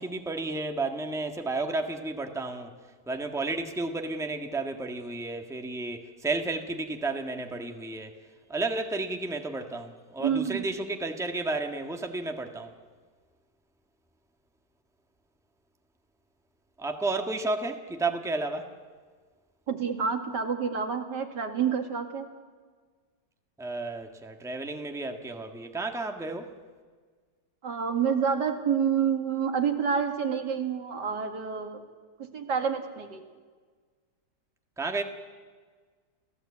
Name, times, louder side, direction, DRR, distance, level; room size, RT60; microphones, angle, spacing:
voice 1, 0.0-2.8 3.1-8.2 8.5-12.7 16.8-18.7 23.6-26.5 34.8-35.0, right 3 dB, ahead, 4 dB, 1.5 m, -32 dB
voice 2, 10.2-10.7 19.7-22.3 27.6-31.9 32.2-33.2, right 7 dB, 75° right, 5 dB, 2.6 m, -28 dB
29.5 x 16.0 x 8.5 m, 1.5 s
omnidirectional pair, 1.8 m